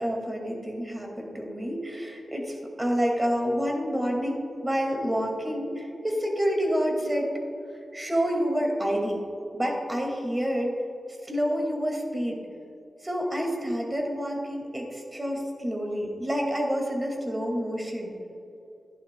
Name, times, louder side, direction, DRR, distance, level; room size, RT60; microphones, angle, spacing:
voice 1, 0.0-7.3 7.9-9.2 9.5-10.8 11.2-12.4 13.0-18.1, equal, 25° right, 0 dB, 2.1 m, -28 dB
12.5 x 10.5 x 2.2 m, 2.7 s
cardioid pair, 70°, 0 cm